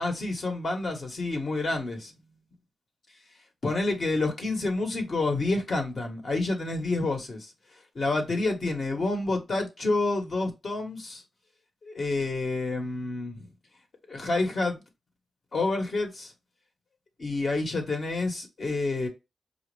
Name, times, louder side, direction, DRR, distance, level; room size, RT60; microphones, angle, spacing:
voice 1, 0.0-2.1 3.6-7.5 7.9-11.2 11.8-13.4 14.1-14.8 15.5-16.3 17.2-19.1, left 2 dB, 50° left, 1.1 m, -28 dB
5.1 x 2.3 x 3.2 m
wide cardioid pair, 120°, 0 cm